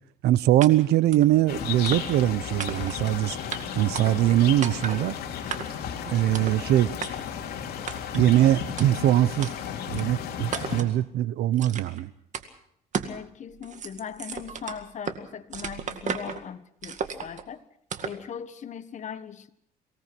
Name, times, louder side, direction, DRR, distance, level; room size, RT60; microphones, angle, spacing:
voice 1, 0.2-3.4 3.7-5.1 6.1-7.0 8.1-9.5 9.9-12.1, right 13 dB, 75° right, 18 dB, 0.9 m, -22 dB
sound 1, 0.6-0.7 1.1-1.3 1.8-2.3 2.6-3.1 3.5-3.6 3.9-4.4 4.6-5.0 5.5-5.9 6.3-6.6 7.0-7.1 7.9-8.2 8.8-8.9 9.4-9.5 10.0-10.1 10.5-10.9 11.6-12.0 12.3-12.5 12.9-13.2 13.5-15.2 15.5-16.4 16.8-17.4 17.9-18.2, right 7 dB, 45° right, 2.1 m, -34 dB
sound 2, 1.5-10.8, left 8 dB, 70° left, 3.2 m, -34 dB
voice 2, 13.0-17.6 18.0-19.5, left 7 dB, 45° left, 12 dB, 1.4 m, -39 dB
24.0 x 18.5 x 6.1 m, 0.71 s
cardioid pair, 110°, 17 cm